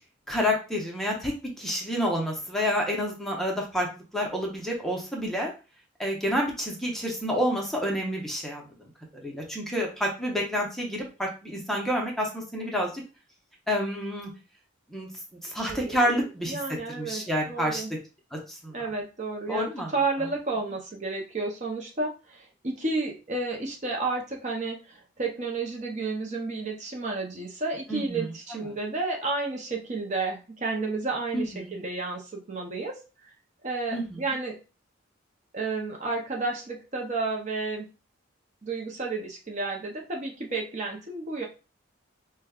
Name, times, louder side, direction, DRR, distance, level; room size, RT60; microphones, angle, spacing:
voice 1, 0.3-3.9 4.1-5.5 6.0-8.6 9.2-13.0 13.7-14.3 14.9-15.1 15.4-16.6 16.9-17.8 18.3-18.8 19.5-19.9 27.9-28.6 31.3-31.8 33.9-34.2, equal, ahead, -1 dB, 0.7 m, -29 dB
voice 2, 15.7-17.2 17.5-17.9 18.7-33.0 33.6-34.6 35.5-37.9 38.6-41.5, right 3 dB, 35° right, 1 dB, 0.6 m, -31 dB
5.0 x 2.2 x 2.3 m, 0.31 s
head